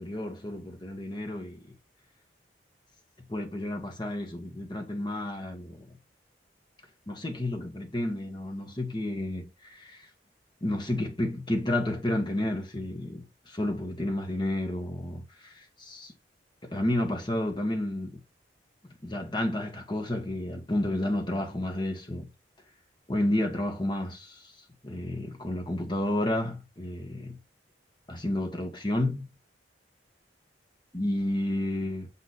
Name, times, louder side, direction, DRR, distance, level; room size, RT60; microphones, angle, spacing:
voice 1, 0.0-1.7 3.3-6.0 7.1-10.1 10.6-16.1 16.6-18.2 19.0-22.3 23.1-24.5 24.8-27.4 28.1-29.3 30.9-32.1, left 1 dB, 25° left, 1.7 m, -31 dB
8.2 x 3.8 x 4.2 m
head